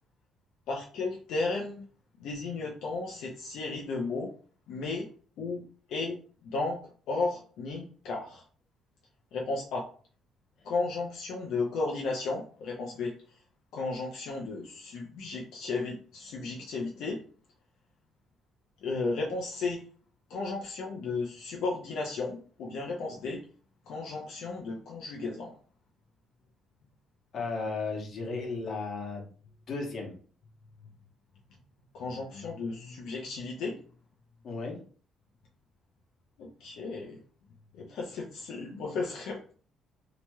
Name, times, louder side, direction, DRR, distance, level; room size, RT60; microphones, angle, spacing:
voice 1, 0.7-1.9 2.2-4.3 4.7-5.1 5.4-5.6 5.9-6.2 6.4-6.8 7.1-8.4 9.3-9.8 10.6-13.1 13.7-17.2 18.8-19.8 20.3-23.4 23.9-25.5 31.9-33.8 36.4-37.2 37.7-39.5, left 3 dB, 70° left, -2 dB, 0.5 m, -34 dB
voice 2, 27.3-29.3 29.7-30.2 34.4-34.8, left 3 dB, 45° left, 0 dB, 0.9 m, -34 dB
3.0 x 2.8 x 2.2 m, 0.43 s
cardioid pair, 145°, 0 cm